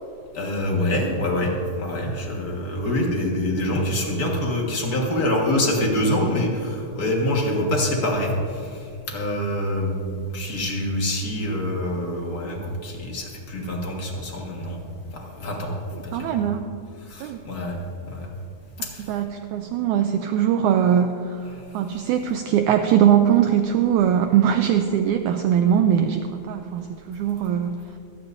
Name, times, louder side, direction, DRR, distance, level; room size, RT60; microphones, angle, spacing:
voice 1, 0.3-14.8 15.1-15.8 16.0-16.3 17.1-17.8 18.1-18.3 18.9-19.0 21.5-21.7, left 1 dB, 40° left, -1 dB, 1.4 m, -25 dB
voice 2, 15.9-16.7 17.2-17.4 19.0-21.4 21.7-27.7, right 9 dB, 90° right, 6 dB, 1.7 m, -21 dB
25.5 x 10.0 x 2.7 m, 2.4 s
omnidirectional pair, 4.0 m